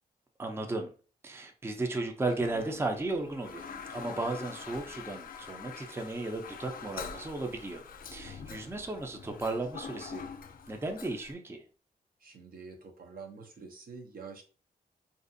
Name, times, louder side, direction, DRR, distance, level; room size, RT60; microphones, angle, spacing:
voice 1, 0.4-0.9 1.2-7.8 8.1-10.2 10.7-11.6, right 2 dB, 15° right, 4 dB, 0.4 m, -35 dB
Toilet flush, 2.2-11.3, left 6 dB, 65° left, 0.4 m, -45 dB
voice 2, 12.2-14.4, right 4 dB, 65° right, 3 dB, 0.6 m, -47 dB
2.5 x 2.3 x 2.5 m, 0.38 s
cardioid pair, 75°, 16 cm